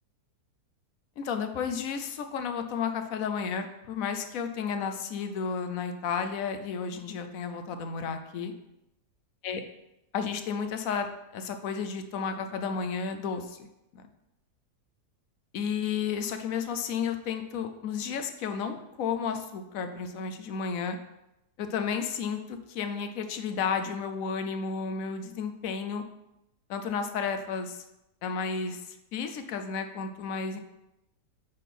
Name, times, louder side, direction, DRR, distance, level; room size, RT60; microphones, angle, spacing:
voice 1, 1.2-8.5 9.4-9.6 10.1-11.1 11.3-13.7 13.9-14.0 15.5-21.0 21.6-26.0 26.7-27.8 28.2-30.6, left 6 dB, 65° left, 7 dB, 0.9 m, -32 dB
8.9 x 3.7 x 4.2 m, 0.89 s
omnidirectional pair, 1.8 m